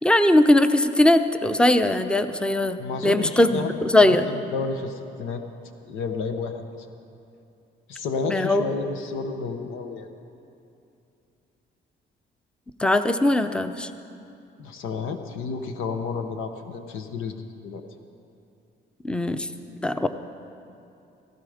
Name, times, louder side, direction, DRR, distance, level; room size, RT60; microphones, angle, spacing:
voice 1, 0.0-4.3 8.3-8.6 12.8-13.9 19.0-19.5 19.8-20.1, left 1 dB, 5° left, 10 dB, 0.7 m, -20 dB
voice 2, 2.8-3.7 4.0-5.4 5.9-6.6 7.9-10.1 14.6-17.8, left 4 dB, 90° left, 6 dB, 1.0 m, -31 dB
16.5 x 16.0 x 5.0 m, 2.7 s
cardioid pair, 90°, 20 cm